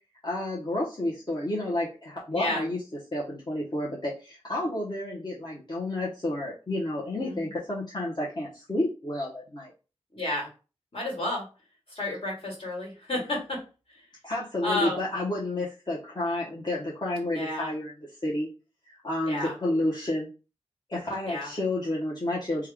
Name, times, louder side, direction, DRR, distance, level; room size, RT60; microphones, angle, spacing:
voice 1, 0.2-2.8 3.1-9.7 14.2-18.5 18.9-20.3 20.9-22.7, left 1 dB, 40° left, -6 dB, 1.0 m, -30 dB
voice 2, 2.3-2.6 7.2-7.5 10.1-10.5 10.9-11.4 11.9-13.6 14.6-15.0 17.3-17.7 19.3-19.5 21.2-21.5, left 1 dB, 55° left, -2 dB, 1.9 m, -31 dB
3.3 x 2.3 x 3.5 m, 0.33 s
cardioid pair, 55°, 11 cm